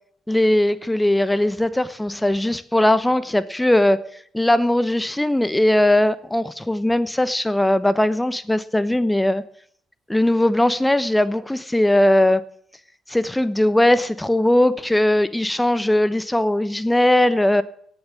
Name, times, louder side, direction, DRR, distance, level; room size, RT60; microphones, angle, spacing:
voice 1, 0.3-4.0 4.3-9.4 10.1-12.4 13.1-17.6, left 1 dB, 10° left, 15 dB, 0.9 m, -19 dB
17.0 x 7.2 x 8.7 m, 0.64 s
figure-of-eight pair, 45°, 0 cm